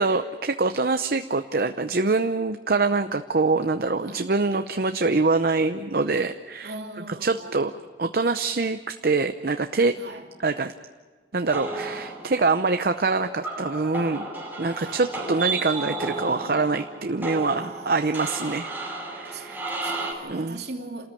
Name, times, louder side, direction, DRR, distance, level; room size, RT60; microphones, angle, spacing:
voice 1, 0.0-6.7 7.2-7.7 8.0-9.9 10.4-10.7 11.3-14.3 14.6-18.7 19.1-19.6 20.2-20.6, right 3 dB, 55° right, 0.7 m, -24 dB
voice 2, 6.6-7.7 10.0-10.2 14.8-15.0 17.5-18.4 19.2-21.1, right 2 dB, 70° right, 2.8 m, -40 dB
sound 1, 11.5-20.1, right 3 dB, 10° right, 5.6 m, -33 dB
29.5 x 14.0 x 9.0 m
head